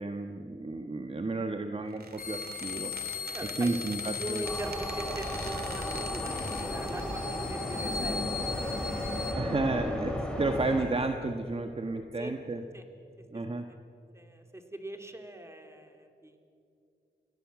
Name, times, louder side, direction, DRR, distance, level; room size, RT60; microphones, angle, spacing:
voice 1, 0.0-3.3 3.6-4.5 9.4-12.6 13.3-13.7, right 2 dB, 35° right, 6 dB, 1.4 m, -32 dB
Squeak, 1.9-7.0, right 4 dB, 60° right, 2.5 m, -45 dB
sound 1, 2.2-9.3, left 6 dB, 55° left, 5.8 m, -38 dB
voice 2, 3.3-8.4 12.2-12.3 12.7-12.8 14.1-16.4, right 1 dB, 15° right, 5 dB, 3.0 m, -41 dB
sound 2, 4.4-10.9, equal, 5° left, 4.9 m, -34 dB
29.5 x 17.0 x 7.5 m, 2.6 s
cardioid pair, 70°, 18 cm